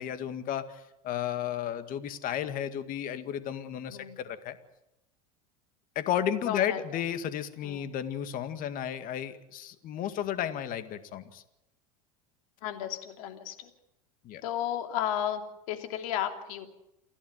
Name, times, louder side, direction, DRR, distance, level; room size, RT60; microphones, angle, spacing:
voice 1, 0.0-4.6 6.0-11.4 14.2-14.4, left 10 dB, 45° left, 10 dB, 2.1 m, -33 dB
voice 2, 6.5-6.8 7.6-7.8 12.6-13.7 14.4-16.7, left 10 dB, 70° left, 5 dB, 3.0 m, -33 dB
29.0 x 11.5 x 9.4 m, 0.87 s
hypercardioid pair, 90°, 19 cm